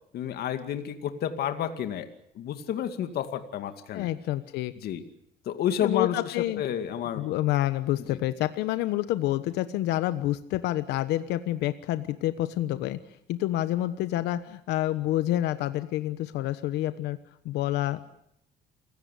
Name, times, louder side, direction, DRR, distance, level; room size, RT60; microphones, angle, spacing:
voice 1, 0.1-2.1 2.3-4.1 4.8-5.0 5.5-7.3 8.1-8.2, left 9 dB, 70° left, 8 dB, 2.3 m, -30 dB
voice 2, 3.9-4.7 5.8-6.6 7.2-13.0 13.3-17.2 17.4-18.0, left 14 dB, 90° left, 12 dB, 1.2 m, -28 dB
28.5 x 17.0 x 8.5 m, 0.76 s
cardioid pair, 110°, 17 cm